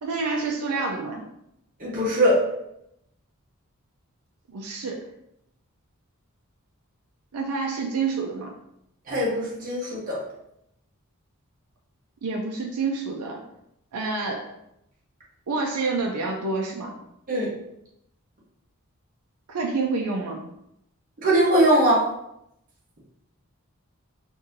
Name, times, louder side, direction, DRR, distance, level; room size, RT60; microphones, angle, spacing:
voice 1, 0.0-1.3 4.5-5.0 7.3-8.5 12.2-13.4 13.9-14.5 15.5-16.9 19.5-20.4, right 4 dB, 90° right, 1 dB, 0.5 m, -28 dB
voice 2, 1.8-2.4 9.1-10.2 17.3-17.5 21.2-22.0, right 1 dB, 40° right, -6 dB, 0.9 m, -21 dB
3.9 x 2.6 x 2.6 m, 0.80 s
head